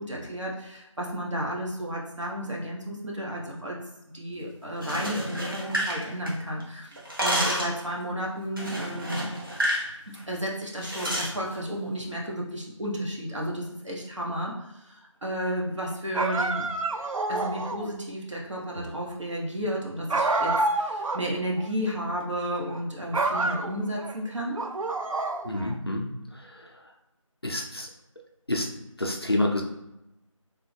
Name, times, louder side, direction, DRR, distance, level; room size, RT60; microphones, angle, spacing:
voice 1, 0.0-3.8 4.1-9.3 10.3-16.7 17.3-24.6, equal, 65° right, -2 dB, 1.0 m, -32 dB
sound 1, 4.7-6.6 6.9-7.8 8.6-9.9 10.2-10.3 10.8-11.3, equal, 40° right, 0.7 m, -29 dB
sound 2, 16.1-17.9 20.1-21.3 21.6-21.7 22.6-22.8 23.1-24.1 24.6-25.7, right 2 dB, 80° right, 0.4 m, -28 dB
voice 2, 25.4-26.7 27.4-27.9 28.5-28.7 29.0-29.6, left 1 dB, 50° left, 0 dB, 0.5 m, -28 dB
3.5 x 2.1 x 3.2 m, 0.90 s
figure-of-eight pair, 175°, 17 cm